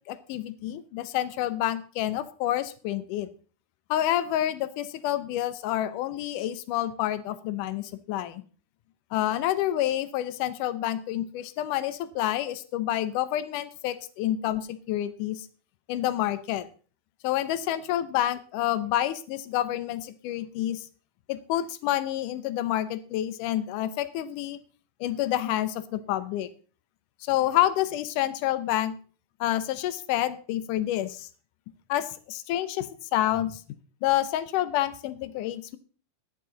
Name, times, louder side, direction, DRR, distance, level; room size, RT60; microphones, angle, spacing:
voice 1, 0.1-3.3 3.9-8.4 9.1-15.5 15.9-16.7 17.2-20.9 21.3-24.6 25.0-26.5 27.2-29.0 29.4-31.3 31.9-33.6 34.0-35.8, left 13 dB, 75° left, 14 dB, 2.1 m, -28 dB
12.0 x 10.5 x 3.9 m, 0.39 s
omnidirectional pair, 4.2 m